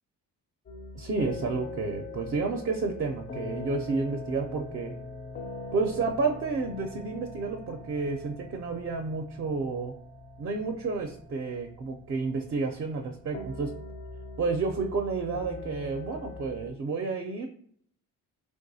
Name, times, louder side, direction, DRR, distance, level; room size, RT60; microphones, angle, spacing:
sound 1, 0.7-16.7, left 3 dB, 35° left, 0.4 m, -42 dB
voice 1, 0.9-5.0 5.7-9.9 10.4-13.7 14.4-17.5, right 4 dB, 40° right, 4 dB, 0.4 m, -30 dB
3.5 x 2.6 x 2.6 m, 0.63 s
cardioid pair, 125°, 34 cm